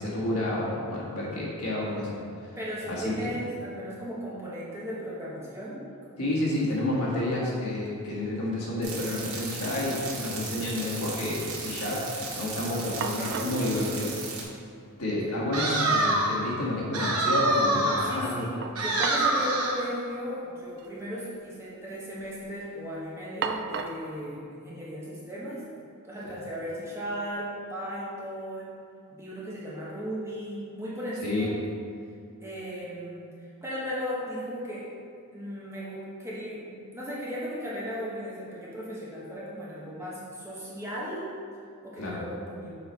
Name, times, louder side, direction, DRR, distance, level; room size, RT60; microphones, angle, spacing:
voice 1, 0.0-2.2 2.9-3.1 6.2-12.0 12.3-14.1 15.0-18.5 26.2-26.3 31.2-31.5 42.0-42.2, left 1 dB, 80° left, -5 dB, 1.6 m, -30 dB
voice 2, 2.6-5.8 6.1-6.3 13.2-13.8 14.0-14.1 15.2-15.4 18.0-25.6 26.0-28.8 29.1-31.5 32.4-33.2 33.6-34.9 35.3-41.3 41.8-42.8, equal, 10° right, -7 dB, 1.1 m, -36 dB
sound 1, 6.5-6.6 6.9-7.5 7.8-8.7 9.0-9.1 12.5-12.6 13.0-13.7 14.8-14.9 15.3-15.4 18.6-19.4 19.7-19.8 20.7-20.9 21.2-21.7 22.1-22.5 23.4-24.1, right 6 dB, 55° right, 0.3 m, -36 dB
sound 2, 8.8-14.4, right 4 dB, 70° right, 1.2 m, -37 dB
sound 3, 15.5-16.4 16.9-18.2 18.8-19.8, right 2 dB, 90° right, 1.0 m, -25 dB
6.8 x 4.4 x 4.1 m, 2.4 s
head